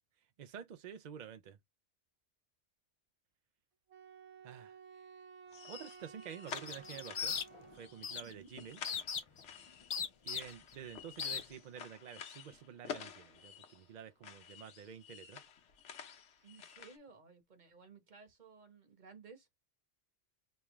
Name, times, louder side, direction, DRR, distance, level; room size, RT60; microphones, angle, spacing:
voice 1, 0.4-1.6 4.4-5.1 5.7-7.4 7.7-8.8 10.2-15.4, right 8 dB, 60° right, 0.5 m, -50 dB
Wind instrument woodwind instrument, 3.9-8.2, right 6 dB, 80° right, 1.0 m, -55 dB
sound 1, 5.5-14.0 14.2-17.0, left 7 dB, 90° left, 1.2 m, -50 dB
sound 2, 6.5-7.7 8.0-8.3 8.8-9.4 9.9-10.7 11.2-11.4, left 6 dB, 55° left, 0.3 m, -38 dB
voice 2, 16.4-19.5, right 5 dB, 45° right, 1.2 m, -57 dB
5.3 x 2.3 x 3.0 m
omnidirectional pair, 1.2 m